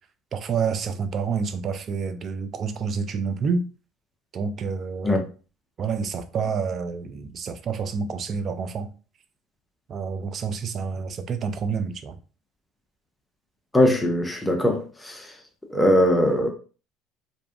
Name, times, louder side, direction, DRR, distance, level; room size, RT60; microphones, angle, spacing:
voice 1, 0.3-3.6 4.3-5.2 5.8-8.9 9.9-12.1, right 5 dB, 45° right, 0.4 m, -28 dB
voice 2, 13.7-15.3 15.7-16.5, left 1 dB, 10° left, 0.6 m, -21 dB
2.6 x 2.3 x 2.4 m
hypercardioid pair, 70°, 0 cm